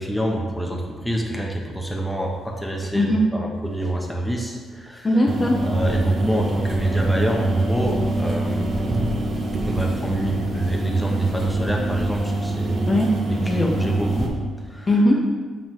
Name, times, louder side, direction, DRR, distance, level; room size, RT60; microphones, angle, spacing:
voice 1, 0.0-5.1 5.6-9.0 9.6-12.9 13.3-14.3 14.7-14.9, right 1 dB, ahead, -1 dB, 1.1 m, -26 dB
voice 2, 5.0-5.6 12.9-13.8 14.9-15.2, left 1 dB, 30° left, 0 dB, 0.8 m, -20 dB
sound 1, 5.3-14.3, right 2 dB, 50° right, 1.1 m, -25 dB
7.3 x 5.5 x 3.2 m, 1.5 s
cardioid pair, 90°, 0 cm